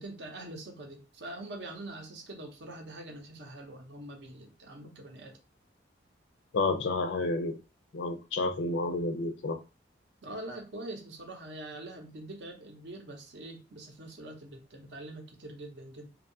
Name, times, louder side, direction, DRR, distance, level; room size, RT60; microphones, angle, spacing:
voice 1, 0.0-5.4 10.2-16.1, right 1 dB, 65° right, 2 dB, 0.7 m, -44 dB
voice 2, 6.5-7.6 7.9-9.6, left 3 dB, 75° left, 8 dB, 0.4 m, -30 dB
2.6 x 2.3 x 2.6 m, 0.31 s
head